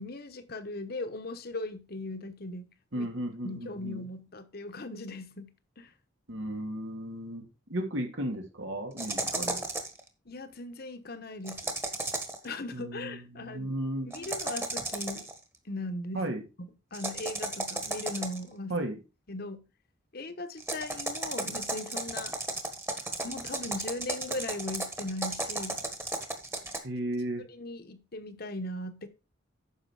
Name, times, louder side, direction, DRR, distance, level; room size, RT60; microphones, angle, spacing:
voice 1, 0.0-3.1 3.4-5.9 10.3-11.8 12.4-13.7 14.1-15.3 15.6-16.3 16.6-18.8 19.3-19.6 20.1-22.4 23.2-25.8 27.5-29.1, left 2 dB, 55° left, 1.2 m, -39 dB
voice 2, 2.9-4.0 6.3-7.4 7.7-9.6 12.7-14.1 16.1-16.4 18.7-19.0 26.8-27.4, right 1 dB, 85° right, 2.6 m, -34 dB
sound 1, 9.0-10.0 11.4-12.4 14.1-15.4 16.9-18.5 20.6-26.8, right 2 dB, 15° right, 1.4 m, -34 dB
9.8 x 6.4 x 4.9 m
head